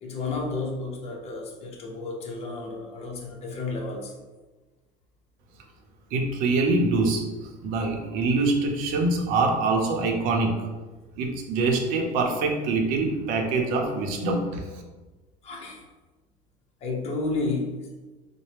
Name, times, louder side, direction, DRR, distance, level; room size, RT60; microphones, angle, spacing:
voice 1, 0.0-4.2 15.4-15.8 16.8-17.9, left 3 dB, 40° left, 0 dB, 0.8 m, -32 dB
voice 2, 6.1-10.7 11.2-14.8, right 3 dB, 65° right, 2 dB, 0.7 m, -25 dB
4.1 x 2.1 x 3.3 m, 1.2 s
cardioid pair, 130°, 16 cm